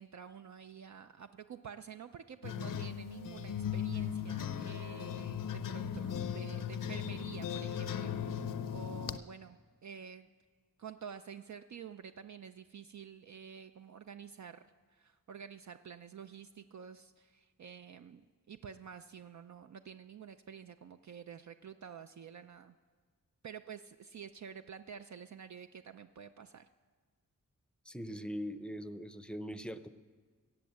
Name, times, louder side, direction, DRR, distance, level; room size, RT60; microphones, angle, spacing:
voice 1, 0.0-10.3 10.8-22.7 23.4-26.7, right 7 dB, 60° right, 9 dB, 0.5 m, -49 dB
sound 1, 2.4-9.2, left 8 dB, 70° left, 0.6 m, -38 dB
voice 2, 27.9-29.9, equal, 5° left, 12 dB, 0.6 m, -41 dB
16.5 x 7.8 x 7.5 m, 1.5 s
wide cardioid pair, 75°, 34 cm